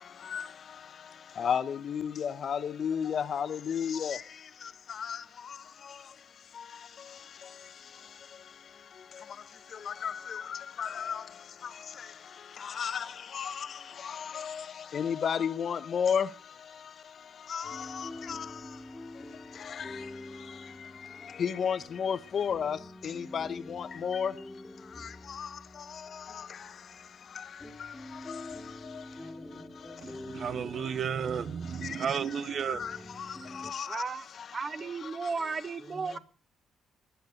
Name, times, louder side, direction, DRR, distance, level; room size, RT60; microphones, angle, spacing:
voice 1, 1.4-4.2 5.0-5.2 9.9-11.2 12.6-13.1 13.3-13.7 14.0-14.6 14.9-16.3 17.5-18.5 19.8-19.9 21.4-22.8 23.0-24.3 25.4-25.5 32.8-32.9 33.5-34.0, left 7 dB, 55° left, 1.0 m, -32 dB
sound 1, 17.6-33.7, left 1 dB, 20° left, 2.3 m, -47 dB
voice 2, 29.2-30.3 30.6-30.9 35.8-36.2, equal, 15° right, 2.7 m, -52 dB
voice 3, 30.0-32.9 33.4-33.5, right 7 dB, 55° right, 0.7 m, -33 dB
voice 4, 33.9-34.3 34.5-36.2, right 4 dB, 35° right, 1.2 m, -34 dB
13.5 x 10.5 x 6.5 m
cardioid pair, 90°, 0 cm